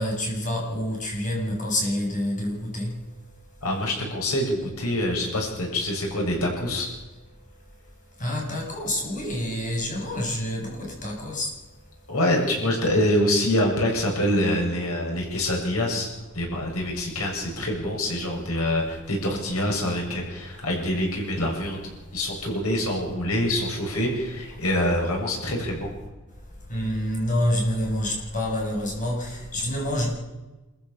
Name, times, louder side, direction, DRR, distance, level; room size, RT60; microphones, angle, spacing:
voice 1, 0.0-3.1 8.2-11.6 26.6-30.2, left 1 dB, 40° left, -1 dB, 7.4 m, -27 dB
voice 2, 3.6-6.9 12.1-16.1 16.3-21.8 22.1-25.9, left 1 dB, 85° left, 0 dB, 7.8 m, -25 dB
27.0 x 15.0 x 7.3 m, 1.1 s
head